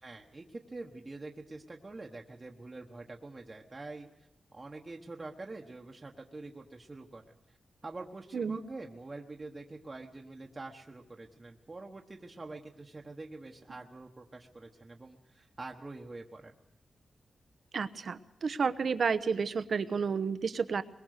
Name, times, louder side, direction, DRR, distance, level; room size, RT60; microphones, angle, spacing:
voice 1, 0.0-4.1 4.5-7.6 7.8-16.6, right 2 dB, 25° right, 1 dB, 1.3 m, -46 dB
voice 2, 17.7-20.8, right 5 dB, 55° right, 13 dB, 1.0 m, -31 dB
23.5 x 21.5 x 6.6 m, 0.83 s
wide cardioid pair, 130°, 0 cm